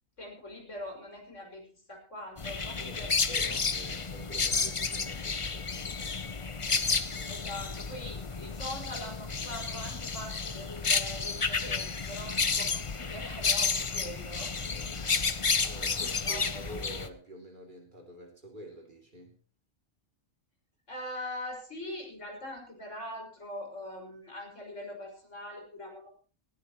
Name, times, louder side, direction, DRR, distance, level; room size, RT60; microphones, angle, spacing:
voice 1, 0.2-3.1 3.4-3.6 4.5-4.6 7.3-15.5 16.0-16.8 20.9-26.1, left 1 dB, 65° left, 1 dB, 6.3 m, -42 dB
sound 1, 2.4-17.1, left 4 dB, 30° left, 0.7 m, -31 dB
voice 2, 2.8-6.3 7.2-7.4 15.6-19.4, right 1 dB, 40° right, 1 dB, 3.1 m, -47 dB
19.0 x 16.5 x 3.1 m, 0.36 s
omnidirectional pair, 1.4 m